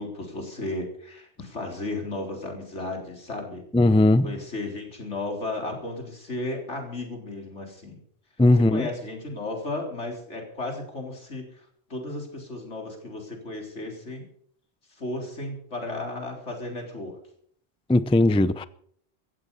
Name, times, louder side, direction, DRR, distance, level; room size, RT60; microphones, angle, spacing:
voice 1, 0.0-3.6 4.2-8.0 8.6-11.5 11.9-14.3 15.0-17.2, left 2 dB, 80° left, 4.2 m, -34 dB
voice 2, 3.7-4.3 8.4-8.9 17.9-18.7, left 2 dB, 10° left, 0.4 m, -18 dB
16.5 x 14.5 x 5.5 m
omnidirectional pair, 1.2 m